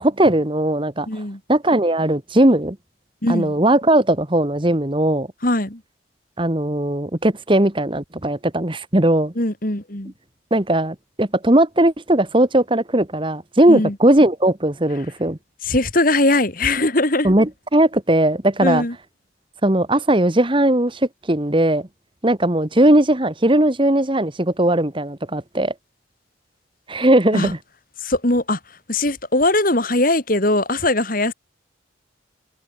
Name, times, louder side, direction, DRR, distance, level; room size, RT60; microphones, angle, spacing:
voice 1, 0.0-1.1 1.5-2.8 3.3-5.3 6.4-9.3 10.5-15.4 17.2-18.8 19.6-21.9 22.2-25.7 26.9-27.6, right 1 dB, 25° right, 1.4 m, -18 dB
voice 2, 1.1-1.4 3.2-3.6 5.4-5.8 9.4-10.1 13.7-13.9 15.6-17.3 18.6-18.9 27.3-27.5 28.0-28.6 28.9-31.3, left 2 dB, 45° left, 3.0 m, -20 dB
head